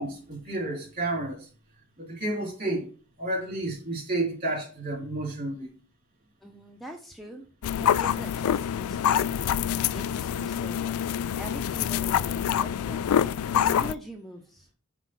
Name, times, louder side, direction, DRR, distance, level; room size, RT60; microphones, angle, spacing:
voice 1, 0.0-1.5 2.0-2.9 3.2-5.7, right 2 dB, 45° right, 3.2 m, -31 dB
voice 2, 6.4-7.5 7.8-9.6 9.9-13.1 13.5-14.7, equal, ahead, 0.6 m, -42 dB
sound 1, 7.6-13.9, left 9 dB, 90° left, 0.3 m, -26 dB
6.2 x 4.9 x 5.8 m
head